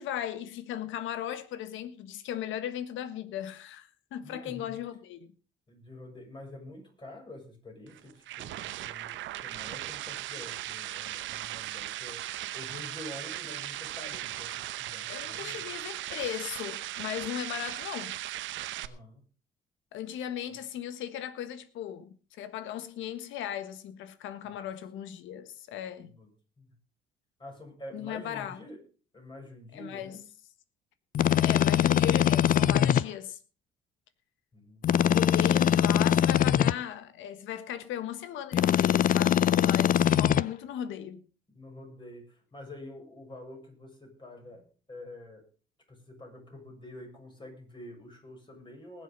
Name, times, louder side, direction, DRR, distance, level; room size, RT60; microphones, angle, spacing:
voice 1, 0.0-5.3 15.1-18.2 19.9-26.2 27.9-28.6 29.7-30.2 31.4-33.4 35.0-41.2, left 10 dB, 80° left, 1.5 m, -37 dB
voice 2, 4.2-4.8 5.7-15.7 18.8-19.2 24.4-24.7 26.0-26.3 26.6-26.8 27.4-28.8 29.1-30.2 34.5-34.9 41.5-45.4 45.9-49.0, left 1 dB, 25° left, 7.2 m, -47 dB
sound 1, 7.9-18.9, right 14 dB, 75° right, 1.0 m, -38 dB
sound 2, 31.1-33.0 34.8-36.7 38.5-40.4, left 10 dB, 45° left, 0.6 m, -22 dB
20.0 x 7.6 x 5.4 m
cardioid pair, 95°, 20 cm